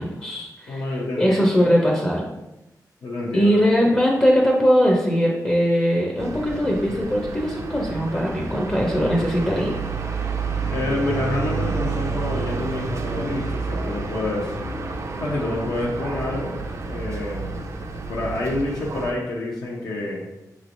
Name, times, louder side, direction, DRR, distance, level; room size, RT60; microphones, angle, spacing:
voice 1, 0.0-0.8 1.2-2.3 3.3-9.8, equal, 20° left, -1 dB, 0.6 m, -20 dB
voice 2, 0.7-1.6 3.0-3.6 10.7-14.6 15.2-16.5 16.8-17.6 18.1-20.2, left 2 dB, 70° left, -5 dB, 0.7 m, -28 dB
sound 1, 6.2-19.1, right 4 dB, 45° right, 0.4 m, -29 dB
5.5 x 3.1 x 2.5 m, 0.98 s
wide cardioid pair, 115°, 7 cm